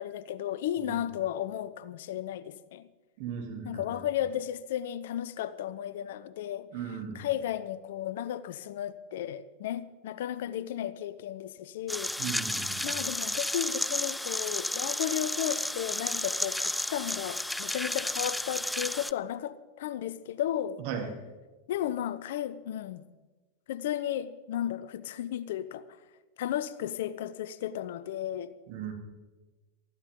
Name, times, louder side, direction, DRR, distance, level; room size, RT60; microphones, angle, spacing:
voice 1, 0.0-2.9 3.6-6.7 7.1-12.1 12.8-20.8 21.7-23.0 23.7-25.8 26.4-28.5, left 11 dB, 70° left, 0.7 m, -34 dB
voice 2, 3.2-4.0 6.7-7.3 12.2-13.0 20.8-21.1 28.7-28.9, right 7 dB, 60° right, 3.2 m, -37 dB
sound 1, 11.9-19.1, left 1 dB, 5° left, 0.4 m, -32 dB
19.5 x 14.5 x 3.8 m
hypercardioid pair, 100°, 0 cm